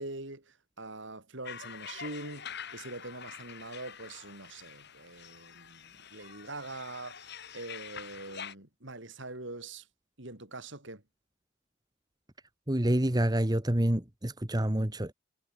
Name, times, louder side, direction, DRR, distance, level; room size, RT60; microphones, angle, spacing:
voice 1, 0.0-7.3 7.5-9.9 10.2-11.0, right 2 dB, 60° right, 3.9 m, -43 dB
sound 1, 1.4-8.5, left 7 dB, 50° left, 7.8 m, -46 dB
voice 2, 12.7-15.1, right 1 dB, 20° right, 1.3 m, -27 dB
head